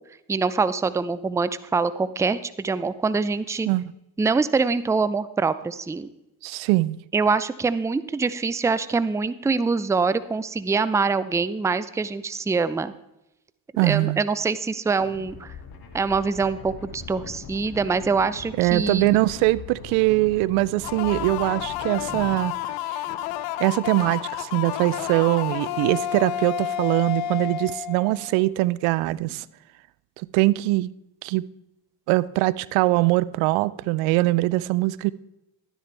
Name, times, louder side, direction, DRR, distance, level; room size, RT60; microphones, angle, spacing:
voice 1, 0.3-3.7 4.2-6.1 7.1-12.9 13.8-15.5 15.9-19.1, right 4 dB, 5° right, 15 dB, 0.4 m, -24 dB
voice 2, 6.4-7.0 13.8-14.2 18.6-22.6 22.9-23.0 23.6-29.4 30.3-30.9 31.2-31.5 32.1-35.1, right 19 dB, 75° right, 20 dB, 0.6 m, -22 dB
sound 1, 15.0-22.4, left 5 dB, 50° left, 2.0 m, -41 dB
sound 2, 20.8-28.4, left 11 dB, 80° left, 0.8 m, -30 dB
sound 3, 21.9-22.7 23.1-24.3 24.6-27.5 28.1-28.4 29.1-29.4, left 1 dB, 15° left, 3.3 m, -48 dB
12.0 x 10.0 x 3.4 m, 0.90 s
hypercardioid pair, 65°, 48 cm